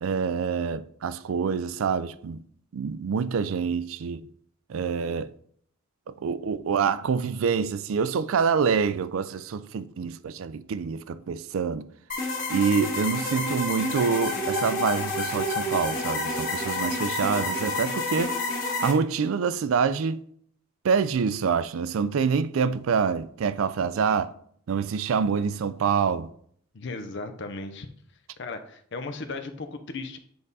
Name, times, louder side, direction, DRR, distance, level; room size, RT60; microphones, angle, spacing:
voice 1, 0.0-2.4 2.7-4.2 4.7-5.3 6.1-11.9 12.5-18.4 18.8-20.2 20.8-24.3 24.7-26.3, right 6 dB, 70° right, 0.4 m, -26 dB
sound 1, 12.1-18.9, left 2 dB, 40° left, 1.7 m, -29 dB
voice 2, 26.7-27.9 28.4-30.2, left 3 dB, 60° left, 0.6 m, -36 dB
7.6 x 3.6 x 4.0 m
head